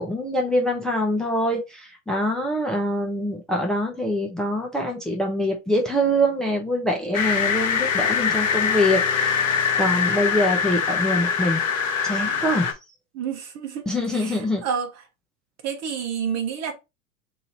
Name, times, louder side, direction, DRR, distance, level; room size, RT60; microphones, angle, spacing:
voice 1, 0.0-9.5 9.8-11.6 12.0-12.7 13.9-14.6, equal, ahead, 0.9 m, -24 dB
sound 1, 7.1-12.7, left 6 dB, 70° left, 1.0 m, -23 dB
voice 2, 13.1-14.9 15.6-16.7, right 7 dB, 40° right, 1.1 m, -29 dB
3.0 x 2.8 x 4.0 m
hypercardioid pair, 90°, 41 cm